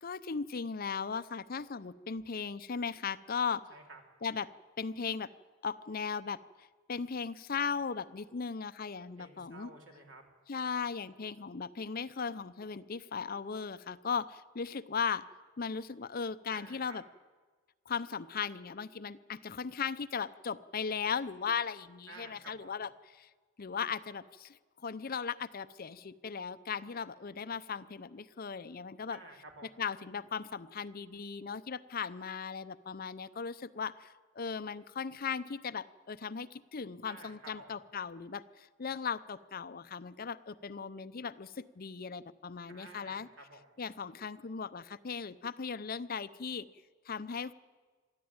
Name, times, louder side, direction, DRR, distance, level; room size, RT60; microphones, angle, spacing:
voice 1, 0.0-3.6 4.2-4.5 4.8-5.3 5.6-9.7 10.5-15.2 15.6-17.0 17.9-22.9 23.1-23.3 23.6-29.2 29.8-43.3 43.8-46.7 47.1-47.5, left 6 dB, 45° left, 14 dB, 0.6 m, -37 dB
voice 2, 3.7-4.0 9.2-10.2 16.5-17.0 22.1-22.7 29.1-29.9 37.0-37.8 42.7-43.7, right 2 dB, 65° right, 2 dB, 3.5 m, -52 dB
23.0 x 14.0 x 8.8 m, 1.4 s
head